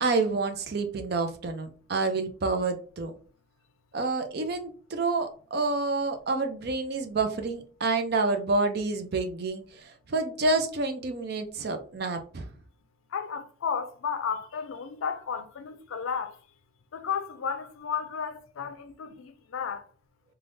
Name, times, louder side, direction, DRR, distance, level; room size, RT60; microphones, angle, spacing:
voice 1, 0.0-3.1 3.9-12.5, right 3 dB, 50° right, 0.5 m, -28 dB
voice 2, 13.1-16.4 16.9-19.9, left 6 dB, 80° left, 0.4 m, -33 dB
3.3 x 2.3 x 2.6 m
head